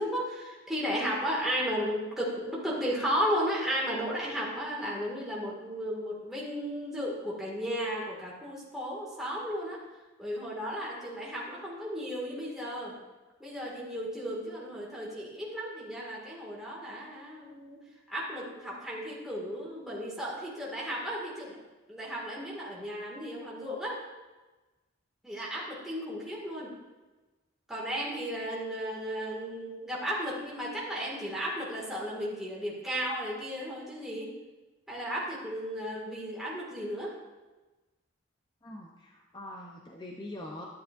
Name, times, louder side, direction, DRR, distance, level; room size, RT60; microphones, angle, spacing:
voice 1, 0.0-9.8 10.2-12.9 13.4-17.8 18.1-21.6 21.9-24.0 25.2-26.7 27.7-34.3 34.9-37.1, equal, ahead, -6 dB, 2.0 m, -34 dB
voice 2, 38.6-40.7, left 1 dB, 20° left, 0 dB, 0.6 m, -43 dB
11.5 x 9.8 x 2.6 m, 1.2 s
head